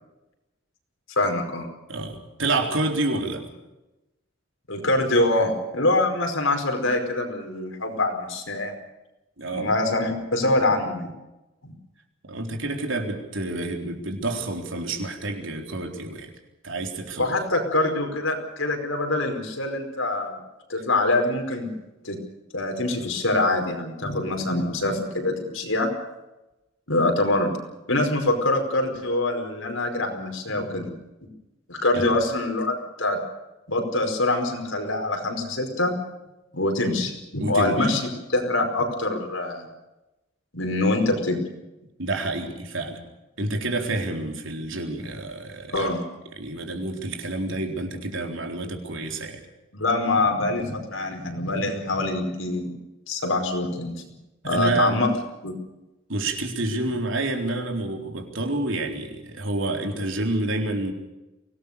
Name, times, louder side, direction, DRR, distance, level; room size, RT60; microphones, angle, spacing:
voice 1, 1.1-1.7 4.7-8.7 9.5-11.1 11.6-11.7 17.2-20.4 20.7-21.7 22.0-22.2 22.5-25.9 26.9-27.5 27.9-30.9 31.7-33.2 33.7-35.9 36.5-39.7 40.5-41.4 45.7-46.0 49.7-52.7 53.1-54.0 54.4-55.1 55.4-55.5, left 2 dB, 75° left, 3 dB, 5.2 m, -24 dB
voice 2, 1.9-3.5 9.4-9.7 12.3-16.3 16.6-17.3 31.9-32.1 37.4-37.9 42.0-43.0 43.4-45.9 46.4-49.4 54.4-55.0 56.1-60.9, right 2 dB, 70° right, 3 dB, 3.9 m, -28 dB
24.5 x 18.5 x 6.8 m, 1.0 s
head